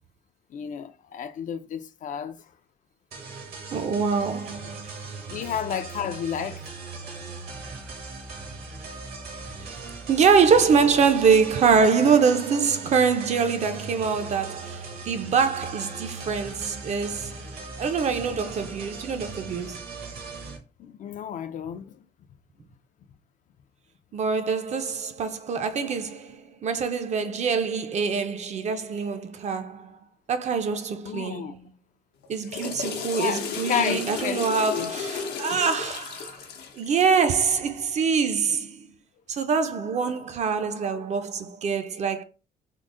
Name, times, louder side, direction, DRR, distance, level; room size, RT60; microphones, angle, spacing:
voice 1, 0.5-2.4 5.3-6.7 20.8-22.0 31.0-31.5 33.1-34.4 34.7-34.9, left 8 dB, 50° left, 0.4 m, -31 dB
sound 1, 3.1-20.6, right 4 dB, 70° right, 1.1 m, -39 dB
voice 2, 3.7-5.0 9.6-9.8 10.1-19.8 24.1-30.0 30.3-31.6 32.3-36.4 36.7-38.9 39.3-42.2, right 5 dB, 45° right, 0.5 m, -24 dB
Water / Toilet flush, 32.2-37.5, left 6 dB, 90° left, 0.7 m, -34 dB
3.7 x 2.0 x 3.6 m
cardioid pair, 125°, 17 cm